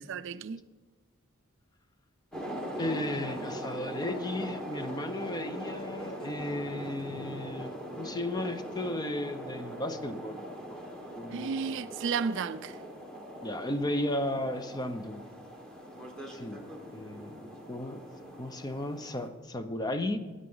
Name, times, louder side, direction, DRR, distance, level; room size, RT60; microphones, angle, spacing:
voice 1, 0.1-0.6 11.3-12.8, right 6 dB, 60° right, 0.4 m, -33 dB
sound 1, 2.3-19.3, equal, 5° left, 1.4 m, -41 dB
voice 2, 2.8-10.4 10.7-10.8 11.2-11.5 13.4-15.2 16.3-16.6 16.9-18.0 18.4-20.2, left 1 dB, 20° left, 0.7 m, -35 dB
13.5 x 9.6 x 3.9 m
head